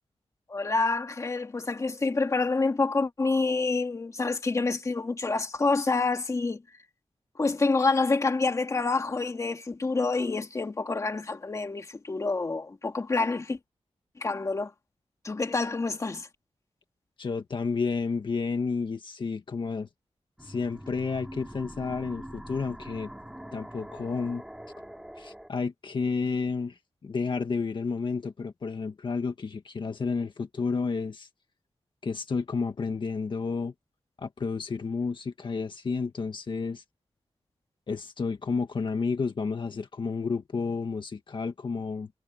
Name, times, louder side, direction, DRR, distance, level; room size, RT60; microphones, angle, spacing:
voice 1, 0.5-6.6 7.4-13.6 14.2-14.7 15.2-16.3, left 3 dB, 30° left, 1.9 m, -27 dB
voice 2, 17.2-19.9 20.4-23.1 23.5-24.4 25.2-31.3 32.0-33.7 34.2-36.8 37.9-42.1, left 4 dB, 45° left, 1.7 m, -31 dB
sound 1, 20.4-25.5, right 1 dB, 5° right, 2.5 m, -43 dB
wide cardioid pair, 180°, 11 cm